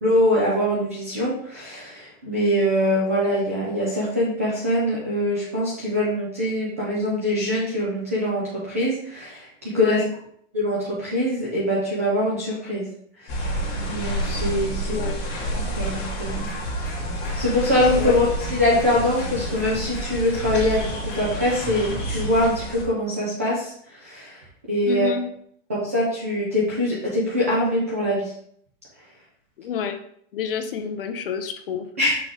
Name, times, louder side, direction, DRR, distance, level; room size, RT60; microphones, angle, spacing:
voice 1, 0.0-9.5 9.7-10.0 10.5-12.9 13.2-13.6 13.9-14.9 15.5-16.5 17.3-24.4 24.7-25.1 25.7-28.3 32.0-32.2, left 1 dB, 10° right, -6 dB, 0.4 m, -23 dB
voice 2, 9.7-10.1 14.9-15.2 18.0-18.1 24.9-25.2 29.6-30.0 30.3-31.9, left 7 dB, 45° left, 8 dB, 0.7 m, -28 dB
sound 1, 13.3-22.8, right 1 dB, 25° left, 1.9 m, -29 dB
sound 2, 16.2-22.4, right 1 dB, 5° left, 2.5 m, -38 dB
6.0 x 3.8 x 4.9 m, 0.65 s
supercardioid pair, 175°, 38 cm